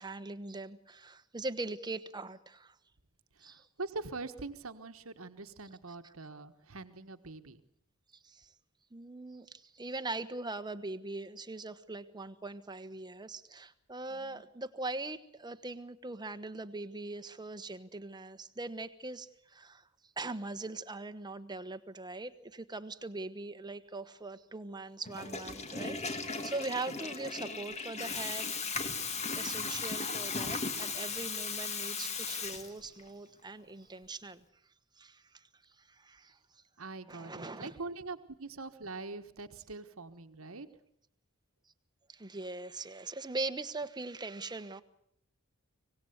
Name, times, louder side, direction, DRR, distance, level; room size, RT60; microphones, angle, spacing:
voice 1, 0.0-2.7 3.4-3.7 8.2-8.5 8.9-19.8 20.2-28.6 29.4-34.4 35.0-35.4 35.8-36.4 37.1-37.7 42.1-44.8, right 2 dB, 20° right, 11 dB, 1.3 m, -41 dB
voice 2, 3.4-7.6 14.1-14.4 36.8-40.7, right 3 dB, 70° right, 8 dB, 1.4 m, -43 dB
Water tap faucet / Toilet flush, 25.0-33.1, left 4 dB, 30° left, 2.2 m, -37 dB
25.0 x 18.5 x 8.2 m, 0.73 s
head